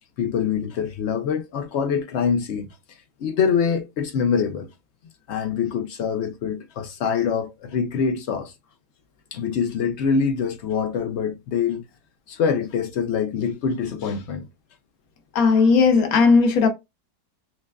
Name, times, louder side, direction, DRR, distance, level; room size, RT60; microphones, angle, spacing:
voice 1, 0.2-4.7 5.3-8.5 9.3-11.8 12.3-14.5, left 6 dB, 85° left, 0.6 m, -25 dB
voice 2, 15.3-16.7, left 4 dB, 65° left, 1.3 m, -16 dB
5.9 x 2.3 x 2.2 m
omnidirectional pair, 1.7 m